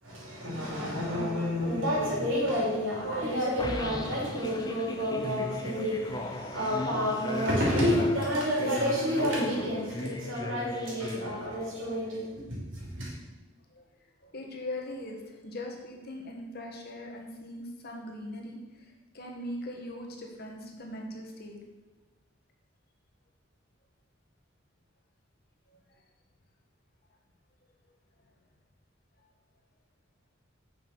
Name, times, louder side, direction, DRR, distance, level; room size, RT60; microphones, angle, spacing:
voice 1, 0.0-13.1, equal, 80° right, -5 dB, 3.3 m, -29 dB
sound 1, 3.6-11.9, left 1 dB, 20° left, 0.6 m, -38 dB
voice 2, 10.5-11.8 13.7-13.8 14.3-18.6 19.1-21.6, left 1 dB, 50° left, 0 dB, 1.5 m, -41 dB
7.1 x 5.8 x 5.9 m, 1.2 s
head